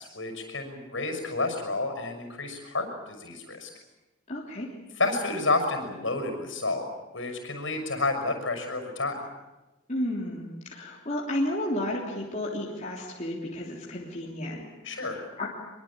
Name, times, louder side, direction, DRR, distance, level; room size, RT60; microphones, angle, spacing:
voice 1, 0.0-3.7 5.0-6.9 7.1-9.2 14.8-15.2, left 2 dB, 70° left, 6 dB, 6.0 m, -30 dB
voice 2, 4.3-4.7 9.9-15.5, left 1 dB, 35° left, -3 dB, 3.3 m, -32 dB
24.0 x 23.0 x 8.7 m, 1.0 s
head